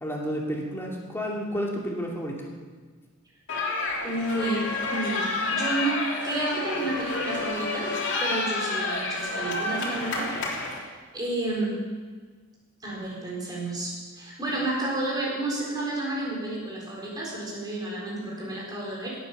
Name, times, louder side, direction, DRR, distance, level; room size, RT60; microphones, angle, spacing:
voice 1, 0.0-2.5, equal, 10° left, -2 dB, 2.5 m, -31 dB
sound 1, 3.5-10.8, left 2 dB, 55° left, 3.3 m, -29 dB
voice 2, 4.0-10.3 10.7-10.9 11.1-11.8 12.8-19.2, right 2 dB, 20° right, -4 dB, 4.3 m, -31 dB
16.5 x 9.3 x 6.6 m, 1.5 s
head